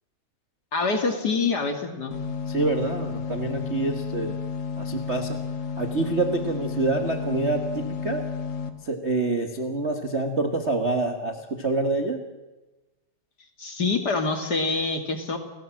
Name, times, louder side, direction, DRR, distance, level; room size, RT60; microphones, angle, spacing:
voice 1, 0.7-2.1 13.6-15.4, left 4 dB, 35° left, 5 dB, 2.2 m, -25 dB
sound 1, 2.1-8.7, left 6 dB, 50° left, 2.2 m, -32 dB
voice 2, 2.5-4.4 4.8-5.4 5.8-8.2 8.8-12.2, right 3 dB, 80° right, 4 dB, 0.6 m, -26 dB
30.0 x 17.0 x 7.6 m, 1.1 s
omnidirectional pair, 3.8 m